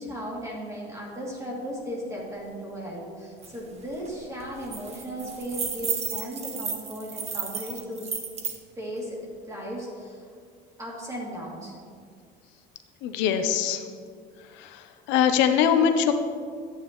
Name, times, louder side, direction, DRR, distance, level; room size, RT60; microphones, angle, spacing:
voice 1, 0.0-8.1 8.8-9.2 9.5-10.3 10.8-11.7, equal, 15° right, -4 dB, 2.8 m, -36 dB
sound 1, 3.4-3.5 3.8-4.1 4.4-8.6, right 6 dB, 35° right, 1.3 m, -33 dB
voice 2, 13.0-13.8 14.6-16.1, left 8 dB, 80° left, 8 dB, 0.7 m, -22 dB
13.0 x 9.2 x 3.1 m, 2.1 s
cardioid pair, 140°, 19 cm